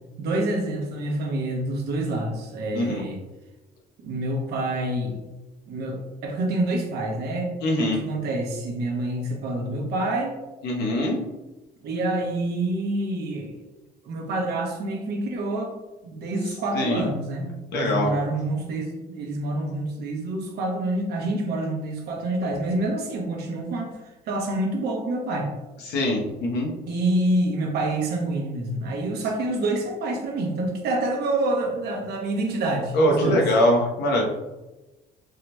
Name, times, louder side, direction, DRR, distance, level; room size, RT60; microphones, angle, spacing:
voice 1, 0.2-3.2 4.0-5.2 5.7-7.5 7.9-10.4 11.8-13.5 14.0-15.7 16.0-24.0 24.3-25.5 26.9-33.4, right 2 dB, 70° right, 0 dB, 0.8 m, -27 dB
voice 2, 2.7-3.0 7.6-8.0 10.6-11.2 16.7-17.0 17.7-18.1 25.8-26.7 32.9-34.2, left 1 dB, 80° left, -1 dB, 0.9 m, -22 dB
3.5 x 2.9 x 2.2 m, 1.1 s
cardioid pair, 110°, 17 cm